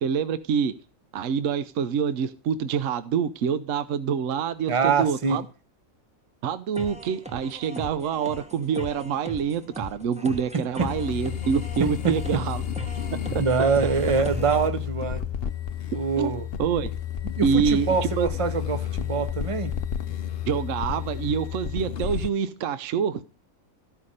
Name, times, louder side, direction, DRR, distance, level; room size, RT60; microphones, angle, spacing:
voice 1, 0.0-0.7 1.1-4.7 5.0-5.4 6.4-12.6 13.3-13.4 16.2-16.3 16.6-16.9 17.4-17.9 18.2-18.3 20.5-23.2, right 7 dB, 70° right, 1.0 m, -26 dB
voice 2, 4.7-5.4 10.5-10.9 11.8-12.4 13.4-15.2 15.9-16.5 17.2-19.7, right 5 dB, 30° right, 0.7 m, -25 dB
sound 1, 6.7-14.7, right 1 dB, 5° right, 1.1 m, -39 dB
sound 2, 10.8-22.3, left 9 dB, 55° left, 0.8 m, -31 dB
14.0 x 5.6 x 6.4 m
omnidirectional pair, 1.4 m